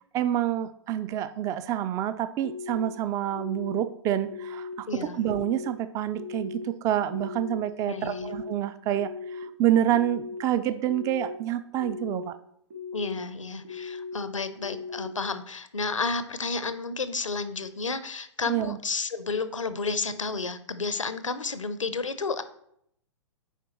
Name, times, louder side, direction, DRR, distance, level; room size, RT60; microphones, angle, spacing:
voice 1, 0.1-4.9 5.1-12.4 18.5-18.8, right 11 dB, 20° right, 14 dB, 0.3 m, -28 dB
sound 1, 2.4-2.9 3.3-3.8 4.3-4.7 5.2-5.7 6.1-6.6 7.1-7.6 8.0-8.5 8.9-9.4 9.9-10.4 10.8-11.3 11.8-12.2 12.7-13.2 13.6-14.1 14.6-15.1, left 5 dB, 45° right, 1.5 m, -38 dB
voice 2, 4.9-5.2 7.9-8.3 12.9-22.4, left 4 dB, 85° left, 12 dB, 0.7 m, -31 dB
9.9 x 4.6 x 3.0 m, 0.71 s
figure-of-eight pair, 115°, 16 cm